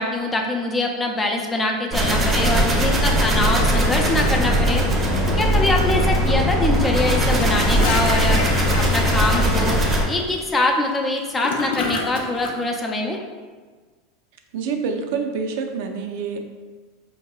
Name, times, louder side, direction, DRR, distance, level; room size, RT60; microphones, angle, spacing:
voice 1, 0.0-4.8 5.3-8.4 8.8-13.2, left 2 dB, 15° left, 2 dB, 0.4 m, -23 dB
sound 1, 1.9-10.0, equal, 25° right, 0.7 m, -19 dB
Gurgling / Toilet flush, 7.2-12.5, left 4 dB, 75° left, 0.5 m, -30 dB
voice 2, 14.5-16.4, right 5 dB, 70° right, 4 dB, 0.4 m, -26 dB
4.5 x 2.7 x 2.3 m, 1.4 s
supercardioid pair, 130°, 0 cm